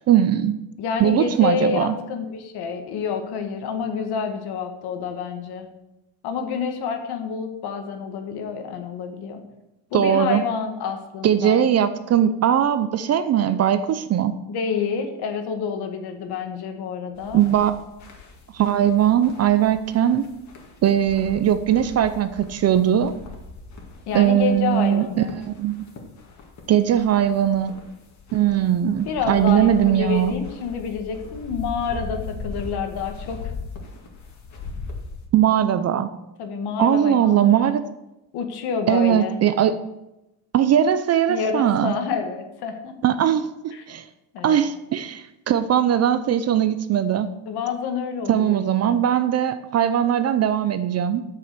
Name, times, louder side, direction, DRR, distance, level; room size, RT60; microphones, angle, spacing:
voice 1, 0.1-0.5 1.0-2.0 9.9-10.4 11.2-14.4 17.3-17.7 18.5-20.3 20.8-23.1 24.1-25.2 25.6-25.9 26.7-27.8 28.3-30.3 35.3-36.1 36.8-37.8 38.9-39.8 40.5-41.9 43.0-43.5 43.9-44.0 44.4-47.3 48.3-51.2, right 10 dB, 35° right, 12 dB, 0.5 m, -20 dB
voice 2, 0.8-5.7 6.2-9.4 9.9-11.7 14.5-17.4 24.1-25.4 29.1-33.5 36.4-37.6 38.3-39.4 41.3-43.0 43.7-43.8 44.3-44.6 47.5-48.6, left 6 dB, 60° left, 5 dB, 1.8 m, -28 dB
sound 1, 17.1-35.2, left 4 dB, 40° left, 2.1 m, -39 dB
8.3 x 6.9 x 6.7 m, 0.93 s
cardioid pair, 135°, 43 cm